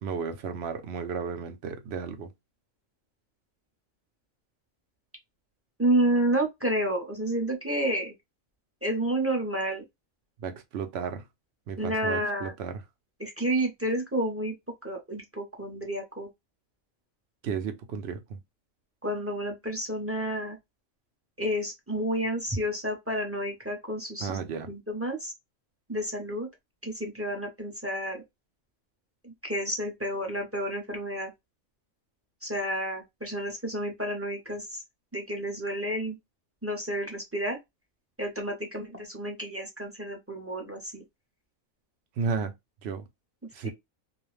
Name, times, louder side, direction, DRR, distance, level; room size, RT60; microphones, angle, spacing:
voice 1, 0.0-2.3 10.4-11.2 11.7-12.8 17.4-18.4 24.2-24.7 42.2-42.5 42.8-43.0 43.5-43.7, right 6 dB, 65° right, 0.7 m, -33 dB
voice 2, 5.8-8.1 8.8-9.8 11.8-12.5 13.2-14.6 14.8-16.3 19.0-20.6 21.4-24.4 24.7-25.3 25.9-26.5 26.8-28.2 29.2-31.3 32.4-34.8 35.1-36.2 36.6-37.6 38.2-41.0 43.6-43.7, right 1 dB, 15° right, 0.5 m, -30 dB
2.4 x 2.1 x 3.1 m
omnidirectional pair, 1.4 m